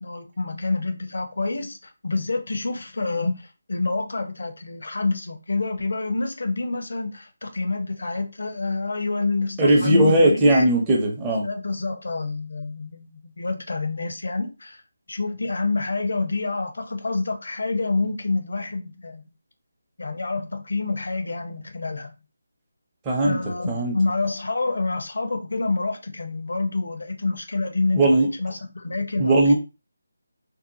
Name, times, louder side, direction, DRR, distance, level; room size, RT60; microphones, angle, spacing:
voice 1, 0.0-10.6 11.4-14.8 15.1-19.2 20.0-22.1 23.2-29.5, left 3 dB, 70° left, 0.7 m, -27 dB
voice 2, 9.6-11.4 23.1-23.4 23.7-23.9 27.9-28.3 29.2-29.5, right 1 dB, 15° right, 0.6 m, -18 dB
2.7 x 2.2 x 2.7 m
figure-of-eight pair, 170°, 0 cm